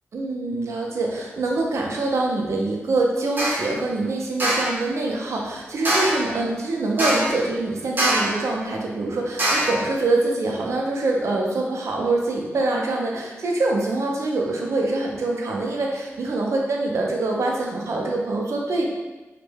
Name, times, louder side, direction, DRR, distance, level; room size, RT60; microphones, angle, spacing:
voice 1, 0.1-18.9, right 2 dB, 80° right, -1 dB, 0.5 m, -24 dB
sound 1, 3.4-3.7 4.4-4.8 5.8-6.3 7.0-7.4 8.0-8.4 9.4-9.8, right 1 dB, 40° right, 0.8 m, -22 dB
3.1 x 2.2 x 3.2 m, 1.2 s
wide cardioid pair, 80°, 5 cm